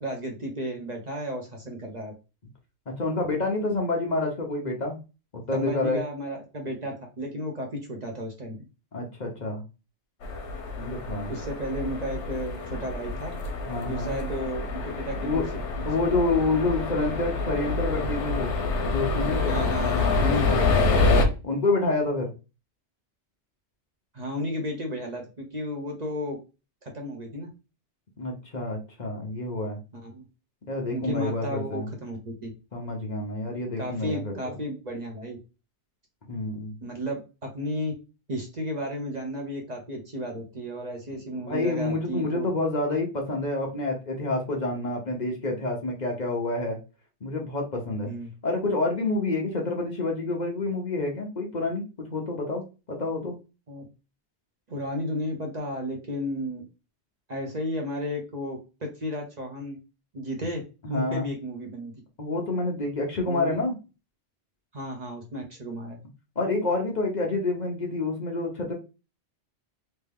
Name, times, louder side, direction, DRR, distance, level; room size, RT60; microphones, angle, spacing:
voice 1, 0.0-2.1 5.5-8.6 10.7-11.0 11.3-13.4 13.9-15.4 15.8-15.9 19.5-21.1 24.1-26.4 26.8-27.5 29.9-30.2 30.9-32.5 33.8-35.4 36.8-37.9 38.3-42.5 48.0-48.3 53.7-53.8 54.7-56.6 57.3-59.8 60.1-60.6 60.9-61.9 63.3-63.5 64.7-66.0, equal, 40° right, 1 dB, 0.8 m, -33 dB
voice 2, 2.9-5.0 5.5-6.0 8.9-9.6 10.8-11.3 13.6-14.2 15.2-15.4 15.8-19.6 20.5-20.6 21.4-22.3 28.2-29.8 30.7-31.9 32.7-34.4 36.3-36.7 41.3-46.8 47.2-48.1 48.4-53.3 60.8-61.3 62.2-63.7 66.4-68.7, left 2 dB, 45° left, 0 dB, 0.9 m, -28 dB
sound 1, 10.2-21.2, left 3 dB, 90° left, 1.0 m, -27 dB
3.2 x 2.7 x 3.5 m, 0.30 s
omnidirectional pair, 1.2 m